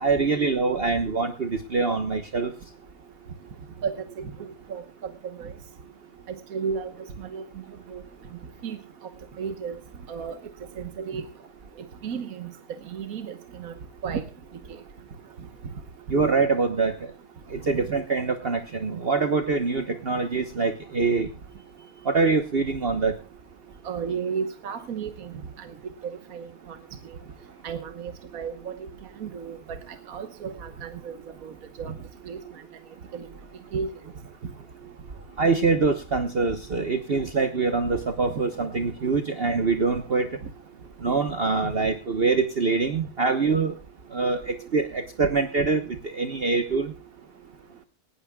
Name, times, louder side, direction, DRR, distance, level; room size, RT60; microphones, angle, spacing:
voice 1, 0.0-2.5 16.1-16.9 17.5-21.3 22.0-23.1 35.4-40.3 41.0-43.7 44.1-46.9, right 4 dB, 45° right, 7 dB, 1.2 m, -24 dB
voice 2, 6.5-6.9 7.2-7.4 7.9-8.0 8.6-8.8 9.4-9.7 10.1-10.4 10.8-11.2 12.0-12.5 12.9-13.7 14.0-14.2 23.8-25.3 25.6-25.7 26.0-26.8 27.6-28.7 29.2-29.8 30.1-31.1 31.4-31.9 32.3-32.4 33.1-33.3 33.7-33.9, right 6 dB, 70° right, 8 dB, 1.6 m, -33 dB
19.0 x 18.0 x 2.3 m, 0.31 s
omnidirectional pair, 1.6 m